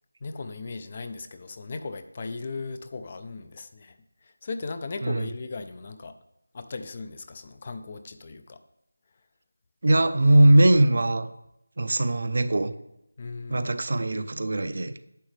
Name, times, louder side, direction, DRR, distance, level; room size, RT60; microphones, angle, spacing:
voice 1, 0.2-6.1 6.5-8.6 13.2-13.7, left 3 dB, 25° left, 10 dB, 0.4 m, -37 dB
voice 2, 9.8-11.3 11.8-12.7 13.5-14.9, right 1 dB, 50° right, 11 dB, 0.5 m, -20 dB
10.0 x 7.1 x 3.2 m, 0.84 s
figure-of-eight pair, 175°, 0 cm